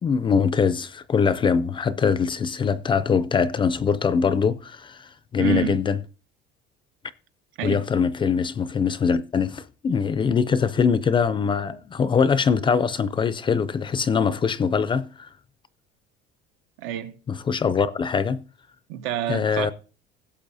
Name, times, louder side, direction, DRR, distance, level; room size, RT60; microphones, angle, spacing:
voice 1, 0.0-6.0 7.6-15.3 17.3-18.4 19.3-19.7, left 6 dB, 25° left, 0.4 m, -23 dB
voice 2, 5.4-5.8 7.6-7.8 16.8-17.2 18.9-19.7, right 10 dB, 85° right, 0.9 m, -28 dB
16.5 x 7.2 x 2.7 m
cardioid pair, 140°, 21 cm